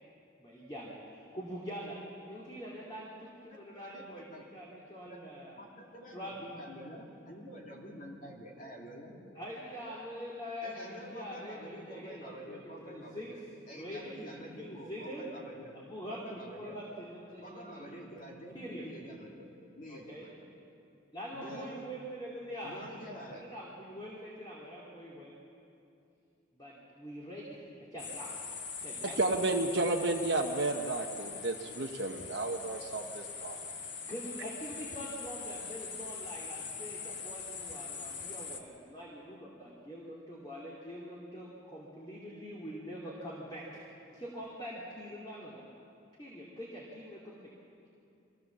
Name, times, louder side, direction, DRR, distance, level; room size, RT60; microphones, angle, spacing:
voice 1, 0.4-2.0 2.3-5.6 6.1-6.4 9.3-13.3 13.7-15.3 15.7-18.0 18.5-18.9 19.9-20.3 21.1-22.8 23.3-25.3 26.5-28.3 28.8-29.4 34.1-43.8 44.1-45.6 46.2-47.5, equal, 20° left, -5 dB, 2.7 m, -44 dB
voice 2, 3.7-4.0 4.3-4.4 5.1-5.2 5.6-9.1 10.6-13.4 13.7-15.8 16.1-16.8 17.4-19.5 19.8-20.5 21.3-21.8 22.6-23.4, equal, 40° left, -1 dB, 2.6 m, -47 dB
sound 1, 28.0-38.6, left 5 dB, 65° left, 1.6 m, -42 dB
voice 3, 29.0-33.6, right 2 dB, 60° right, 1 dB, 1.0 m, -32 dB
24.0 x 15.5 x 7.4 m, 2.6 s
head